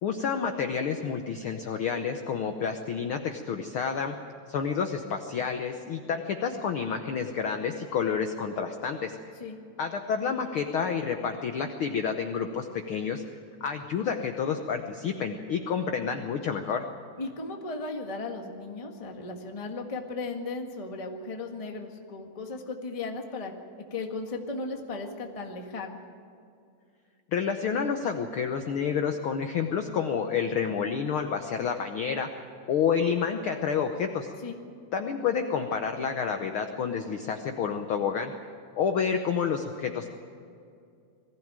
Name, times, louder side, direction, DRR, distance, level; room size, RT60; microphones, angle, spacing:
voice 1, 0.0-4.2 4.5-9.2 9.8-13.2 13.6-16.8 27.3-32.3 32.7-34.3 34.9-38.3 38.8-40.1, left 6 dB, 85° left, 5 dB, 1.1 m, -29 dB
voice 2, 17.2-23.5 23.9-26.0 34.4-34.6, left 3 dB, 25° left, 3 dB, 0.7 m, -36 dB
21.5 x 15.5 x 8.9 m, 2.4 s
omnidirectional pair, 3.7 m